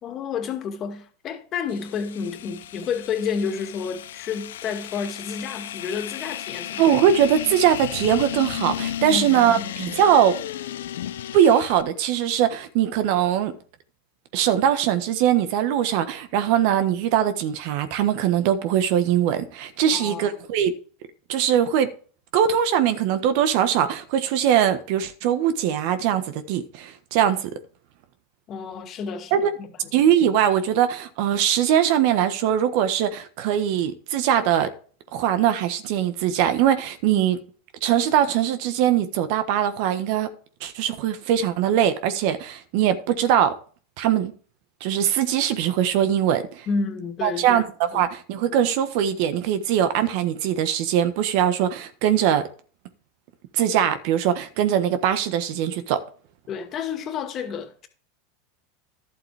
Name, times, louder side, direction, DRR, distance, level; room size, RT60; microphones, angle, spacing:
voice 1, 0.0-7.0 9.1-9.7 19.9-20.3 28.5-29.7 37.1-37.2 46.7-47.6 56.5-57.9, left 6 dB, 40° left, 2.1 m, -30 dB
sound 1, 1.7-11.8, left 11 dB, 80° left, 0.6 m, -34 dB
voice 2, 6.8-10.4 11.3-13.5 14.3-20.7 21.3-21.9 22.3-27.5 29.3-29.5 29.9-34.7 35.1-37.4 37.8-40.3 40.6-43.5 44.0-44.3 44.8-46.7 47.2-52.5 53.5-56.0, right 10 dB, 60° right, 1.3 m, -21 dB
12.0 x 7.7 x 3.5 m
hypercardioid pair, 100°, 0 cm